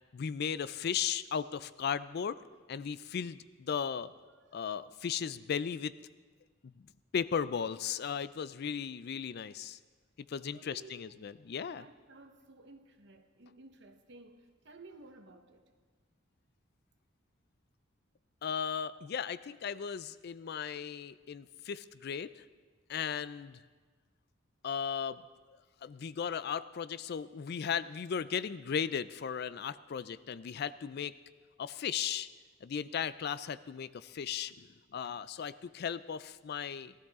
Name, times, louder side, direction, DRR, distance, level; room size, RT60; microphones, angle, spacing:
voice 1, 0.1-2.4 2.7-4.1 4.5-5.9 6.6-6.7 7.1-9.8 10.3-11.8 18.4-22.4 22.9-23.6 24.6-25.2 25.8-31.1 31.6-32.3 32.6-36.9, left 7 dB, 55° left, 15 dB, 0.4 m, -36 dB
voice 2, 4.3-4.6 10.5-11.3 11.7-15.6, right 2 dB, 60° right, 6 dB, 1.1 m, -55 dB
18.5 x 13.0 x 3.6 m, 1.4 s
head